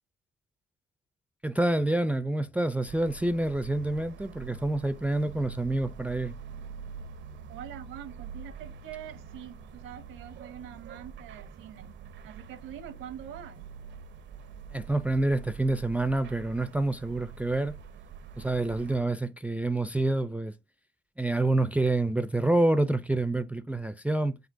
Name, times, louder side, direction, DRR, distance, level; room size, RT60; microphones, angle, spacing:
voice 1, 1.4-6.4 14.7-17.8 18.4-20.5 21.2-24.4, right 2 dB, 5° right, 0.4 m, -27 dB
sound 1, 2.9-19.0, right 6 dB, 65° right, 0.6 m, -45 dB
voice 2, 7.5-11.9 12.2-13.6, right 10 dB, 85° right, 0.9 m, -44 dB
5.1 x 3.2 x 2.5 m
cardioid pair, 90°, 20 cm